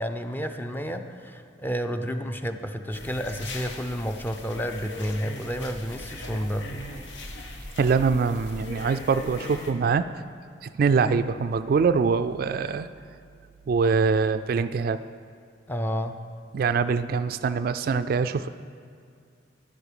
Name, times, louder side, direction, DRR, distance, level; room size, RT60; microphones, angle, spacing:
voice 1, 0.0-6.8 15.7-16.2, equal, 10° left, 6 dB, 0.5 m, -31 dB
sound 1, 2.9-9.7, left 1 dB, 85° left, 1.3 m, -39 dB
voice 2, 7.8-10.2 10.6-12.9 13.7-15.0 16.5-18.5, right 5 dB, 55° right, 11 dB, 0.3 m, -24 dB
11.5 x 11.0 x 5.0 m, 2.2 s
head